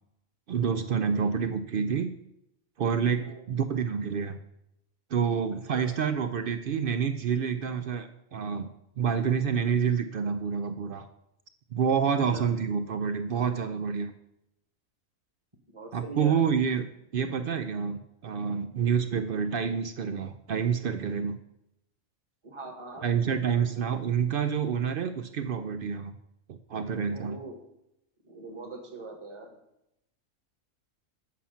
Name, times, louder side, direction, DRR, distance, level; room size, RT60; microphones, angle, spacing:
voice 1, 0.5-2.1 2.8-4.4 5.1-8.7 9.0-11.1 11.7-14.1 15.9-16.9 17.1-21.4 23.0-26.1 26.5-27.4, right 7 dB, 70° right, 10 dB, 0.5 m, -28 dB
voice 2, 15.7-16.4 22.4-23.1 27.1-27.6 28.2-29.6, right 3 dB, 20° right, 3 dB, 1.3 m, -42 dB
8.3 x 5.7 x 5.6 m, 0.83 s
omnidirectional pair, 1.5 m